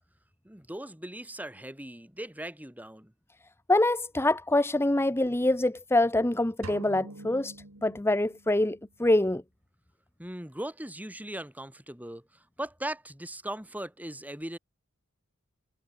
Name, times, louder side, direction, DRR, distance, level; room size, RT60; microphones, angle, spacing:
voice 1, 0.4-3.1 10.2-14.6, right 1 dB, 5° right, 3.6 m, -39 dB
voice 2, 3.7-7.5 7.8-9.4, left 1 dB, 10° left, 0.9 m, -25 dB
sound 1, 6.6-8.7, right 2 dB, 70° right, 2.9 m, -45 dB
head